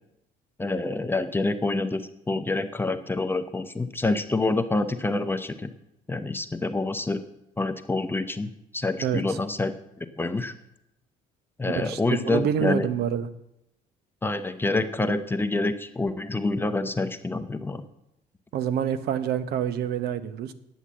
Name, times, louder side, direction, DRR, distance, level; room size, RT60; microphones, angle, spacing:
voice 1, 0.6-5.7 6.1-7.2 7.6-9.7 10.0-10.5 11.6-12.9 14.2-17.8, left 2 dB, 15° left, 9 dB, 0.7 m, -27 dB
voice 2, 9.0-9.4 11.8-13.3 18.5-20.5, right 9 dB, 75° right, 13 dB, 0.9 m, -27 dB
9.9 x 8.1 x 7.4 m, 0.85 s
cardioid pair, 110°, 17 cm